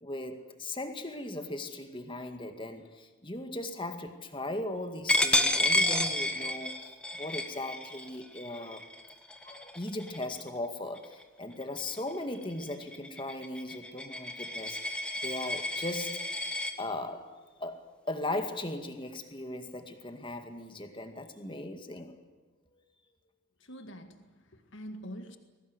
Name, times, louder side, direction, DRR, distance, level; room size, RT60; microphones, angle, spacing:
voice 1, 0.0-8.8 9.4-14.8 15.2-16.4 16.8-17.3 17.6-22.2 22.7-22.8, left 2 dB, 25° left, 2.1 m, -38 dB
Coin (dropping), 5.1-10.5 11.0-11.2 11.6-16.7, left 1 dB, 5° left, 1.5 m, -31 dB
voice 2, 23.6-25.4, equal, 60° left, 1.9 m, -45 dB
22.5 x 18.5 x 9.8 m
head